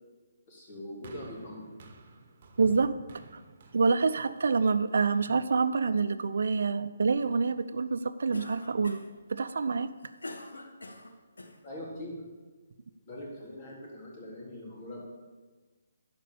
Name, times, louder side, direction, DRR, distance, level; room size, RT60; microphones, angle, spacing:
voice 1, 0.5-1.7 11.6-12.2 13.1-15.0, left 1 dB, 40° left, -3 dB, 3.7 m, -42 dB
sound 1, 1.0-5.4 6.2-6.3, right 3 dB, 45° right, 1.3 m, -52 dB
voice 2, 2.6-2.9 3.3-3.4 3.7-9.0 9.3-9.9, right 4 dB, 70° right, 12 dB, 0.6 m, -27 dB
Cough, 8.3-9.2 9.8-11.6, left 2 dB, 90° left, 1.4 m, -44 dB
11.5 x 5.3 x 7.1 m, 1.3 s
hypercardioid pair, 150°, 0 cm